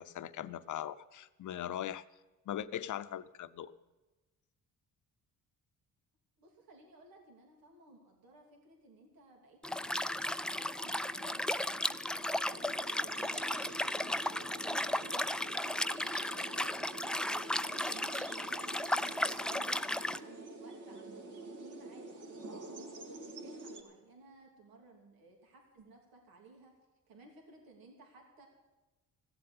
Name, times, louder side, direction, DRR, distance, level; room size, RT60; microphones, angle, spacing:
voice 1, 0.0-2.0 2.5-3.7, left 11 dB, 60° left, 14 dB, 0.7 m, -40 dB
voice 2, 6.4-13.9 14.2-26.7 27.1-28.5, right 2 dB, 80° right, 0 dB, 3.1 m, -58 dB
Liquid, 9.6-20.2, left 1 dB, 5° left, 0.4 m, -35 dB
sound 1, 12.5-23.8, right 2 dB, 60° right, 2.6 m, -48 dB
16.0 x 7.9 x 9.6 m, 1.1 s
cardioid pair, 80°, 35 cm